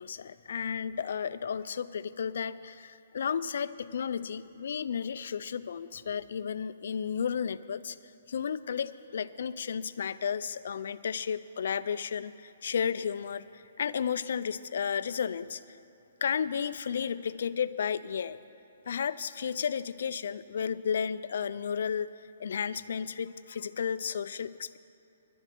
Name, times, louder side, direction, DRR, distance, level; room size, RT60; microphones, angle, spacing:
voice 1, 0.0-8.0 8.3-15.8 16.2-18.4 18.9-22.1 22.4-24.8, left 7 dB, 70° left, 15 dB, 0.4 m, -33 dB
11.0 x 7.6 x 9.1 m, 2.7 s
hypercardioid pair, 150°, 0 cm